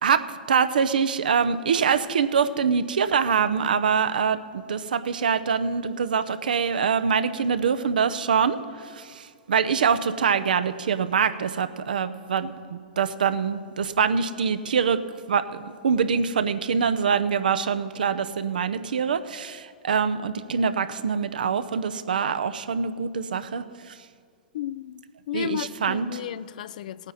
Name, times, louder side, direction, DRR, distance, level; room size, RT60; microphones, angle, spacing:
voice 1, 0.0-15.0 15.3-24.0 25.3-26.2, right 6 dB, 70° right, 12 dB, 0.6 m, -24 dB
voice 2, 24.5-27.1, left 11 dB, 60° left, 17 dB, 0.4 m, -33 dB
18.0 x 9.1 x 4.1 m, 2.1 s
figure-of-eight pair, 105°, 5 cm